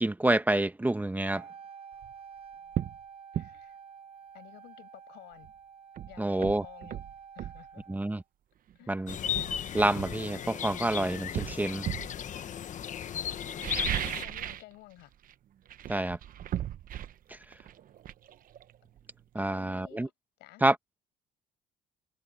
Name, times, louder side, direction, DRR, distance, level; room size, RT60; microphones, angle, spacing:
voice 1, 0.0-1.5 6.2-6.6 7.9-8.2 8.9-9.2 9.7-11.9 15.9-16.2 17.3-17.4 19.3-20.1 20.6-20.8, right 1 dB, 10° right, 1.1 m, -28 dB
Wind instrument woodwind instrument, 1.3-8.2, right 7 dB, 35° right, 3.9 m, -49 dB
sound 1, 1.9-2.1 2.7-3.0 3.3-3.5 5.4-5.5 6.0-7.6 8.7-8.8 9.3-10.7 11.3-12.1 13.4-14.7 15.0-15.3 15.6-19.2 19.5-19.6, right 11 dB, 55° right, 1.0 m, -36 dB
voice 2, 3.3-3.8 4.3-5.5 6.1-7.0 7.3-7.9 8.7-9.2 12.9-13.7 14.2-15.1 19.3-20.1 20.4-20.6, left 18 dB, 90° left, 6.0 m, -53 dB
sound 2, 9.1-14.2, left 9 dB, 50° left, 1.2 m, -36 dB
cardioid pair, 110°, 17 cm